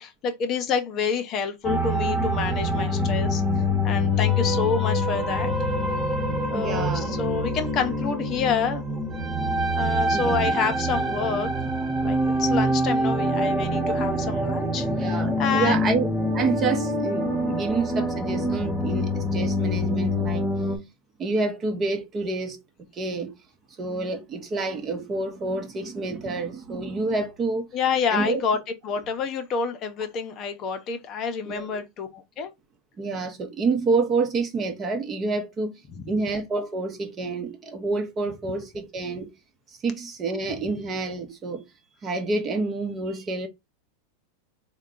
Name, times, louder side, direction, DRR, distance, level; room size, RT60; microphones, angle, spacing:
voice 1, 0.0-3.4 3.8-5.5 6.5-8.8 9.7-11.5 12.0-16.0 27.7-28.6 28.8-32.5 36.0-36.1, left 6 dB, 40° left, 0.7 m, -28 dB
sound 1, 1.6-20.8, equal, 5° right, 1.1 m, -25 dB
voice 2, 6.5-7.2 10.1-10.6 14.9-20.4 21.2-22.6 22.9-23.4 23.8-27.6 28.1-28.4 31.5-31.8 33.0-35.7 36.1-39.3 39.8-41.6 42.0-43.5, right 3 dB, 25° right, 0.8 m, -28 dB
3.6 x 2.2 x 3.7 m
hypercardioid pair, 125°, 0 cm